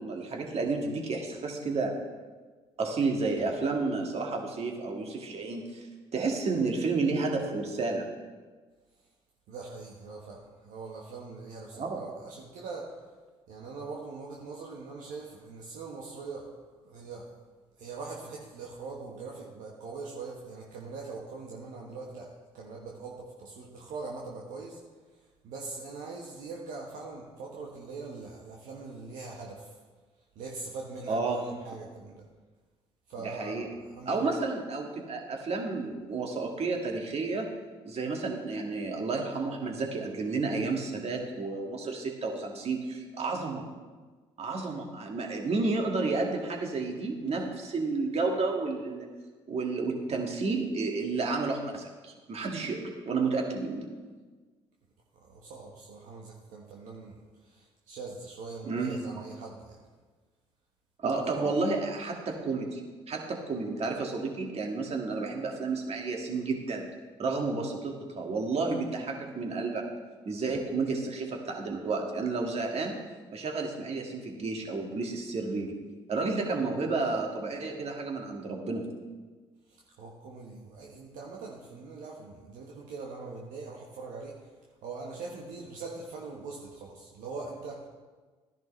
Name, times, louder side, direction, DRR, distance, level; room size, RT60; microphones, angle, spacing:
voice 1, 0.0-1.9 2.8-5.9 6.1-8.0 11.8-12.0 31.1-31.4 33.2-33.7 34.1-37.5 37.9-43.6 44.4-49.1 49.5-53.9 58.7-59.0 61.0-62.8 63.1-66.9 67.2-69.8 70.3-72.9 73.3-75.8 76.1-78.9, right 3 dB, 45° right, 1 dB, 2.1 m, -31 dB
voice 2, 9.5-12.9 13.5-16.5 16.8-17.4 17.8-24.8 25.4-29.8 30.3-32.2 33.1-34.2 55.1-59.8 61.2-61.5 79.7-84.5 84.8-87.9, right 4 dB, 70° right, -2 dB, 1.4 m, -42 dB
13.5 x 10.5 x 3.3 m, 1.4 s
hypercardioid pair, 50°, 14 cm